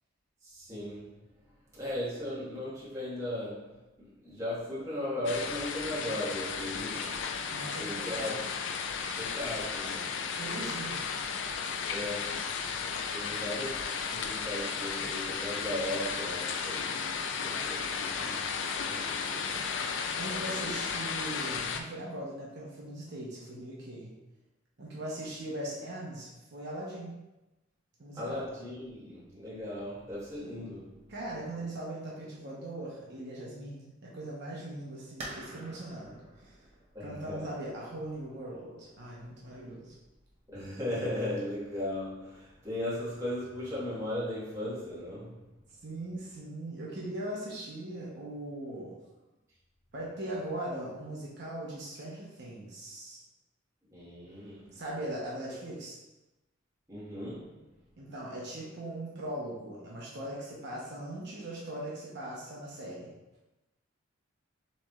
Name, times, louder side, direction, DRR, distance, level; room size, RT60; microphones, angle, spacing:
voice 1, 0.4-1.2 1.7-7.2 7.8-8.4 9.2-10.1 11.9-12.8 13.1-16.9 17.4-18.5 18.8-19.6 20.2-20.7 28.1-31.0 36.9-37.5 40.5-45.4 53.9-54.7 56.9-57.6, left 1 dB, 15° right, 1.5 m, -37 dB
sound 1, 5.3-21.8, left 6 dB, 65° left, 0.4 m, -34 dB
voice 2, 7.5-8.3 10.3-11.0 20.1-24.1 24.8-27.2 28.0-28.5 31.1-36.6 37.0-39.9 45.8-49.0 49.9-53.2 54.7-56.0 58.0-63.1, right 1 dB, 55° right, 0.9 m, -40 dB
sound 2, 35.2-40.7, right 1 dB, 30° right, 0.8 m, -49 dB
6.7 x 3.2 x 2.4 m
head